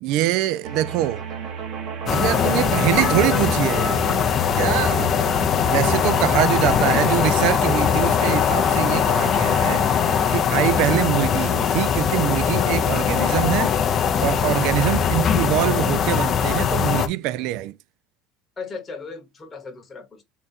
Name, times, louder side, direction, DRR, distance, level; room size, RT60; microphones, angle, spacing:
voice 1, 0.0-1.2 2.1-4.2 4.5-5.3 5.7-9.9 10.3-13.7 14.2-17.7, right 14 dB, 60° right, 0.3 m, -24 dB
sound 1, 0.6-10.4, right 6 dB, 40° right, 1.0 m, -33 dB
sound 2, 2.1-17.1, left 8 dB, 30° left, 0.5 m, -21 dB
voice 2, 6.6-7.1 18.6-20.2, left 3 dB, 15° left, 1.0 m, -37 dB
3.7 x 2.3 x 4.0 m
cardioid pair, 155°, 0 cm